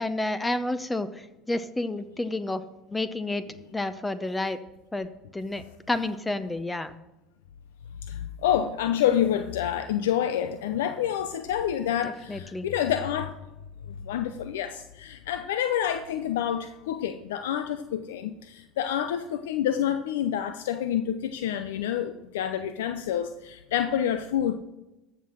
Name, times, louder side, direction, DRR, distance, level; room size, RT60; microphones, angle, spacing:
voice 1, 0.0-2.6 2.9-3.4 3.7-4.6 4.9-7.0 12.0-12.7, left 2 dB, 15° left, 13 dB, 0.8 m, -30 dB
voice 2, 8.0-13.3 13.9-24.5, left 10 dB, 80° left, 10 dB, 0.5 m, -28 dB
14.5 x 5.9 x 6.3 m, 1.0 s
hypercardioid pair, 75°, 0 cm